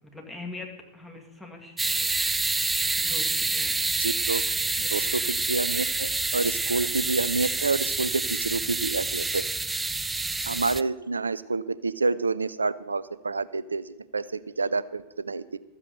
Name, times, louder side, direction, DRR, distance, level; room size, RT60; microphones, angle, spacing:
voice 1, 0.1-2.1 3.0-3.7 4.5-5.3 9.9-10.1, left 3 dB, 5° left, 1 dB, 2.3 m, -43 dB
sound 1, 1.8-10.8, right 3 dB, 10° right, 0.4 m, -28 dB
voice 2, 4.0-4.4 4.8-9.4 10.5-15.6, right 3 dB, 75° right, 17 dB, 0.4 m, -28 dB
13.5 x 7.4 x 6.8 m, 1.0 s
figure-of-eight pair, 90°, 0 cm